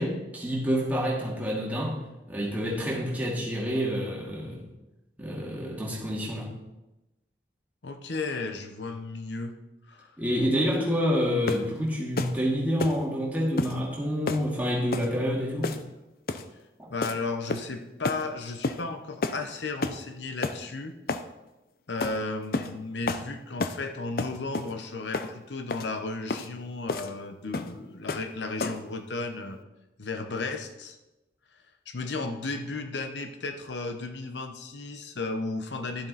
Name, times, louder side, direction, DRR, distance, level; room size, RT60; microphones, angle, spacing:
voice 1, 0.0-2.0 2.3-4.6 5.2-6.5 10.2-15.7 16.8-16.9, equal, 10° right, -4 dB, 2.4 m, -28 dB
voice 2, 7.8-9.6 9.9-10.1 16.9-21.0 21.9-29.6 30.0-31.0 31.9-36.1, left 3 dB, 85° left, 6 dB, 0.9 m, -34 dB
sound 1, 11.5-11.7 12.2-12.4 12.8-13.0 13.6-13.8 14.3-14.5 14.9-15.1 15.6-15.9 16.3-16.5 17.0-17.2 17.5-17.8 18.0-18.2 18.6-18.8 19.2-19.4 19.8-20.0 20.4-20.6 21.1-21.3 22.0-22.2 22.5-22.7 23.1-23.3 23.6-23.8 24.2-24.7 25.1-25.3 25.7-25.9 26.3-26.5 26.9-27.1 27.5-27.7 28.1-28.3 28.6-28.9, left 3 dB, 55° left, 0.6 m, -30 dB
12.0 x 7.5 x 4.1 m, 1.0 s
head